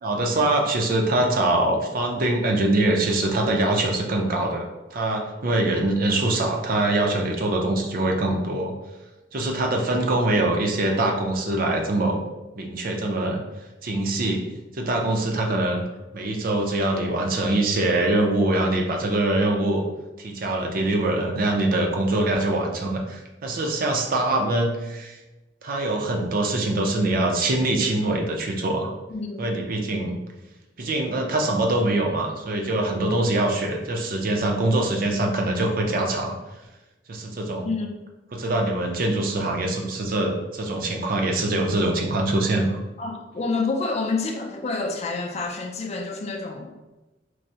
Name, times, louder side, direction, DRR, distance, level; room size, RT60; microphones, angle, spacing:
voice 1, 0.0-4.6 4.9-8.7 9.3-12.2 12.6-13.4 13.8-14.4 14.7-15.8 16.1-19.8 20.2-25.1 25.6-28.9 29.4-30.2 30.8-36.3 37.1-37.7 38.3-42.8, right 2 dB, 50° right, 1 dB, 0.5 m, -23 dB
voice 2, 29.1-29.5 37.6-38.1 43.0-46.7, left 3 dB, 35° left, 2 dB, 0.4 m, -28 dB
4.6 x 2.0 x 2.7 m, 1.1 s
head